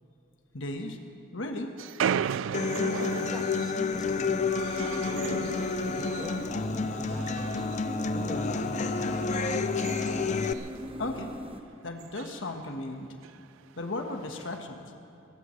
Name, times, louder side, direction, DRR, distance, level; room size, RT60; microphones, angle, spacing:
voice 1, 0.5-1.0 1.3-1.8 11.0-11.3 11.8-13.1 13.8-14.9, left 2 dB, 70° left, 4 dB, 1.4 m, -35 dB
sound 1, 1.8-6.6 6.9-7.9 8.2-8.4 9.0-10.9 11.3-11.4 11.6-11.7 12.0-12.4 13.2-13.4 14.2-14.6, right 8 dB, 75° right, 0.3 m, -36 dB
Human voice / Acoustic guitar, 2.5-10.5, left 4 dB, 40° left, 0.5 m, -30 dB
voice 2, 3.3-4.3 4.8-6.4 6.7-7.5 8.1-9.1, equal, 5° right, -1 dB, 1.9 m, -43 dB
sound 2, 3.9-11.6, right 1 dB, 30° right, 1.2 m, -41 dB
23.0 x 18.5 x 3.2 m, 2.9 s
head